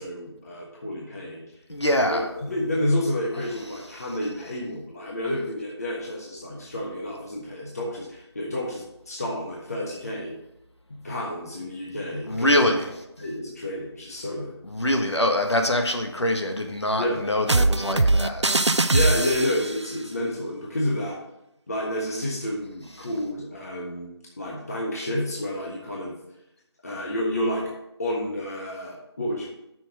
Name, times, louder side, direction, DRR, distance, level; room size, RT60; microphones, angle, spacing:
voice 1, 0.0-1.4 2.1-10.3 11.0-12.7 13.2-14.5 17.0-17.2 18.9-21.2 21.7-24.1 24.4-26.1 26.8-27.7 28.0-29.5, left 1 dB, 35° left, -3 dB, 1.3 m, -29 dB
voice 2, 1.7-2.2 12.3-12.9 14.6-18.9, left 1 dB, 75° left, 3 dB, 1.5 m, -24 dB
sound 1, 17.5-19.8, right 2 dB, 80° right, 0.6 m, -21 dB
7.3 x 6.2 x 6.2 m, 0.86 s
figure-of-eight pair, 165°, 15 cm